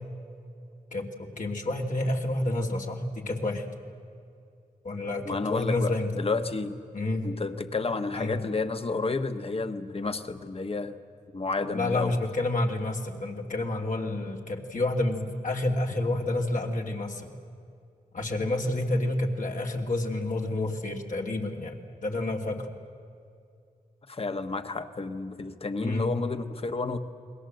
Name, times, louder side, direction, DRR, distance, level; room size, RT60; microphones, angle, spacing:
voice 1, 0.9-3.6 4.8-6.1 6.9-7.3 8.1-8.4 11.7-17.3 18.1-22.7 25.8-26.1, left 2 dB, 65° left, 1 dB, 2.7 m, -29 dB
voice 2, 5.2-6.8 7.2-11.0 11.3-12.2 24.1-27.0, left 3 dB, 40° left, 8 dB, 1.4 m, -31 dB
29.5 x 21.5 x 7.9 m, 2.4 s
wide cardioid pair, 90°, 15 cm